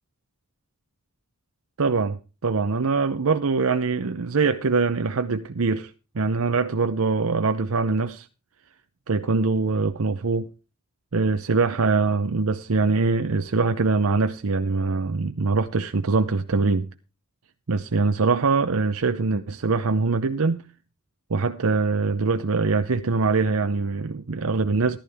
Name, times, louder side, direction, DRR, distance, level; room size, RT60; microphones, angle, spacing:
voice 1, 1.8-8.3 9.1-10.5 11.1-16.9 17.7-20.6 21.3-25.0, right 4 dB, 85° right, 0.7 m, -23 dB
14.0 x 11.5 x 3.5 m
head